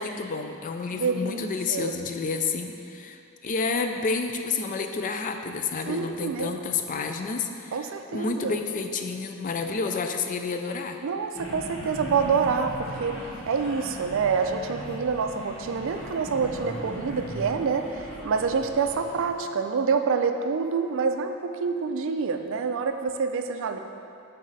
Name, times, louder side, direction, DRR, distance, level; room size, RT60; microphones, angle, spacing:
voice 1, 0.0-7.8 8.1-11.0, left 4 dB, 40° left, 6 dB, 0.4 m, -30 dB
voice 2, 0.9-2.0 5.9-6.7 7.7-8.6 11.0-23.8, right 5 dB, 65° right, 7 dB, 0.4 m, -27 dB
sound 1, 11.3-19.2, equal, 65° left, 1.2 m, -38 dB
7.5 x 4.1 x 4.0 m, 2.6 s
head